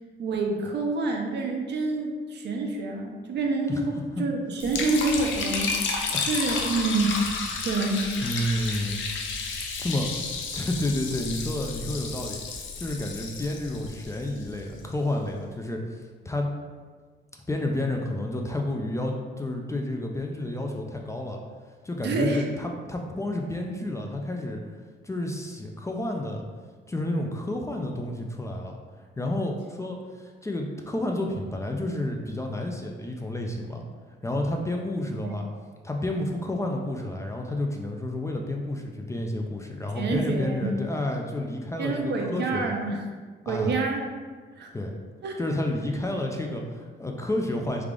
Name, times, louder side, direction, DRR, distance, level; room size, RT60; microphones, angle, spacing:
voice 1, 0.2-5.7 6.3-7.2 7.6-8.1 22.0-22.5 35.2-35.3 40.0-40.7 41.8-43.0 43.5-44.0 44.6-44.7 45.2-45.4, right 3 dB, 60° right, 1 dB, 0.6 m, -27 dB
Liquid, 4.6-14.8, left 4 dB, 75° left, 0.5 m, -32 dB
voice 2, 8.2-9.0 9.8-12.4 12.8-16.5 17.5-21.4 21.8-24.6 25.0-26.4 26.9-28.8 29.2-33.8 34.2-35.5 35.8-42.7 43.5-43.8 44.7-45.0 45.4-47.8, left 1 dB, 15° left, 1 dB, 0.4 m, -30 dB
3.4 x 2.4 x 3.6 m, 1.5 s
cardioid pair, 85°, 20 cm